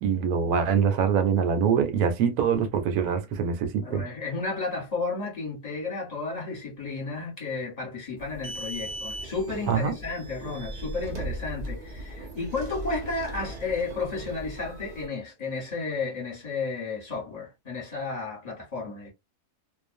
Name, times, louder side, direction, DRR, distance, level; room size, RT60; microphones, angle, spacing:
voice 1, 0.0-4.0 9.7-9.9, right 7 dB, 75° right, 1.0 m, -24 dB
voice 2, 3.8-19.1, left 3 dB, 30° left, 1.1 m, -33 dB
sound 1, 8.2-15.1, right 1 dB, 45° right, 0.5 m, -38 dB
2.5 x 2.2 x 2.5 m
omnidirectional pair, 1.6 m